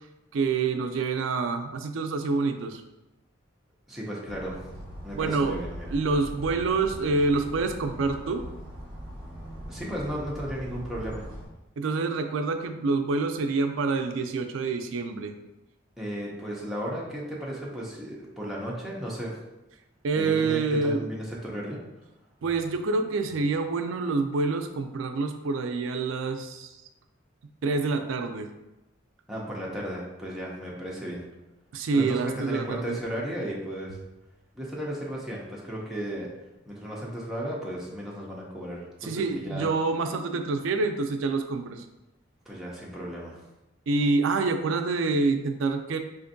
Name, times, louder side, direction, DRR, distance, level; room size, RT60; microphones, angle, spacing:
voice 1, 0.3-2.8 5.2-5.6 5.9-8.4 11.8-15.3 20.0-21.1 22.4-26.8 27.6-28.5 31.7-32.8 39.0-41.8 43.9-46.0, right 3 dB, 75° right, 7 dB, 0.4 m, -27 dB
voice 2, 3.9-4.6 5.0-5.9 9.7-11.3 16.0-19.4 20.1-21.8 29.3-31.2 31.9-34.0 34.5-36.3 36.7-39.7 42.5-43.4, equal, ahead, -5 dB, 0.5 m, -34 dB
sound 1, 4.3-11.5, equal, 25° right, 0.9 m, -41 dB
4.3 x 2.5 x 2.6 m, 0.98 s
head